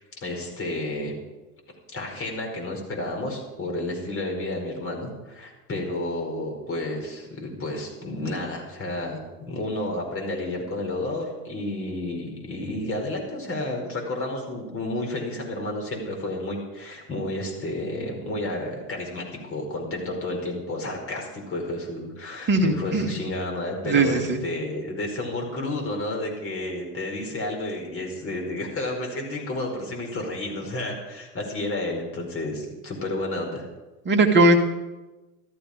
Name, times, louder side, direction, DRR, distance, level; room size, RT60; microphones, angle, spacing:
voice 1, 0.2-1.1 1.9-33.7, left 1 dB, 25° left, 1 dB, 4.8 m, -31 dB
voice 2, 22.5-23.2 23.8-24.4 34.1-34.6, right 2 dB, 25° right, 4 dB, 2.1 m, -19 dB
13.5 x 13.5 x 5.1 m, 1.1 s
hypercardioid pair, 100°, 47 cm